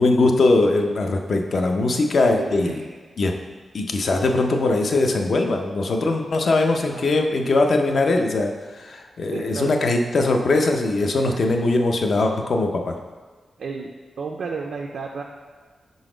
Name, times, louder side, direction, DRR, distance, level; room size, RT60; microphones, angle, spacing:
voice 1, 0.0-2.8 3.2-3.3 3.7-12.9, left 2 dB, 55° left, 4 dB, 0.5 m, -21 dB
voice 2, 2.4-3.0 6.9-7.3 9.3-9.7 11.2-11.5 13.6-15.2, right 4 dB, 75° right, 1 dB, 0.4 m, -33 dB
4.9 x 4.0 x 4.9 m, 1.4 s
wide cardioid pair, 145°, 0 cm